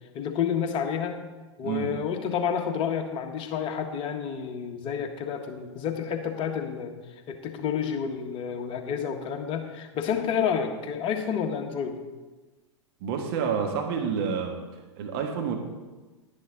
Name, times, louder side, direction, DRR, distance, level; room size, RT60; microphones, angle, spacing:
voice 1, 0.1-1.2 1.6-6.9 7.3-12.0, left 7 dB, 35° left, 4 dB, 1.4 m, -29 dB
voice 2, 1.6-1.9 13.0-14.6 15.0-15.6, right 6 dB, 50° right, 3 dB, 1.6 m, -28 dB
11.0 x 9.9 x 4.0 m, 1.2 s
figure-of-eight pair, 100°, 16 cm